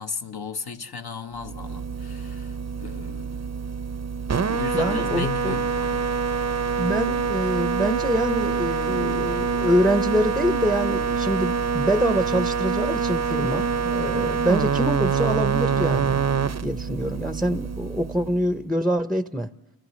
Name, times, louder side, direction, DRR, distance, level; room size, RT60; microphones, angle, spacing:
voice 1, 0.0-3.4 4.5-6.1, left 5 dB, 60° left, 1.1 m, -35 dB
sound 1, 1.4-18.6, right 5 dB, 40° right, 0.6 m, -25 dB
voice 2, 4.4-5.6 6.8-16.2 16.6-19.5, equal, ahead, 0.7 m, -25 dB
29.5 x 28.0 x 3.2 m
cardioid pair, 50°, 43 cm